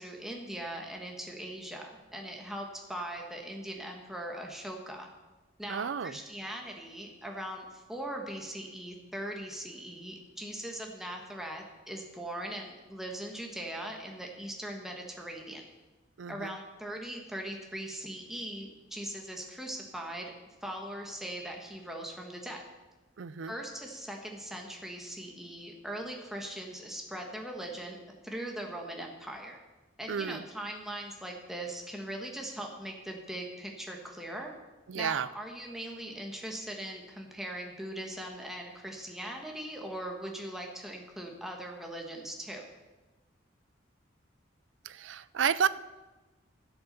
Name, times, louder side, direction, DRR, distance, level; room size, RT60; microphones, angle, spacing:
voice 1, 0.0-5.1 5.6-15.6 16.3-20.3 20.6-22.6 23.5-28.0 28.2-29.6 30.0-34.5 34.9-42.6, right 1 dB, ahead, 1 dB, 1.5 m, -40 dB
voice 2, 5.7-6.2 16.2-16.6 23.2-23.5 30.1-30.4 34.9-35.3 44.8-45.7, right 7 dB, 80° right, 17 dB, 0.5 m, -31 dB
12.5 x 8.0 x 6.8 m, 1.2 s
head